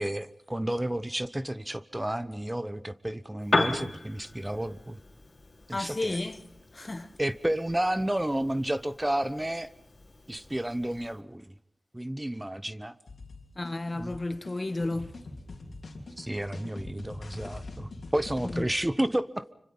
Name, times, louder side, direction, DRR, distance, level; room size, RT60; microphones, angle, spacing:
voice 1, 0.0-5.0 5.7-6.2 7.2-9.7 10.3-11.4 11.9-12.9 14.0-14.2 16.2-19.4, right 1 dB, 20° right, 0.9 m, -31 dB
Piano, 3.4-11.2, left 2 dB, 60° left, 3.1 m, -36 dB
voice 2, 5.7-6.4 6.7-7.1 13.5-15.1 18.4-18.7, left 2 dB, 40° left, 1.5 m, -32 dB
sound 1, 13.1-18.6, left 2 dB, 85° left, 3.4 m, -43 dB
26.0 x 25.0 x 5.5 m
cardioid pair, 40°, 0 cm